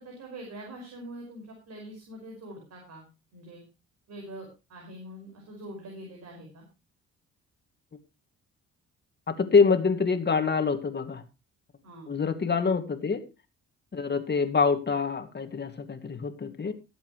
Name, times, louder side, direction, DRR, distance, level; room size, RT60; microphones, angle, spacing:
voice 1, 0.0-3.1 3.3-3.6 4.1-6.6 11.8-12.1, right 1 dB, 60° right, 0 dB, 5.5 m, -44 dB
voice 2, 9.3-11.2 12.1-13.3 13.9-16.7, left 5 dB, 35° left, 8 dB, 2.2 m, -25 dB
21.0 x 8.0 x 3.1 m, 0.27 s
cardioid pair, 90°, 30 cm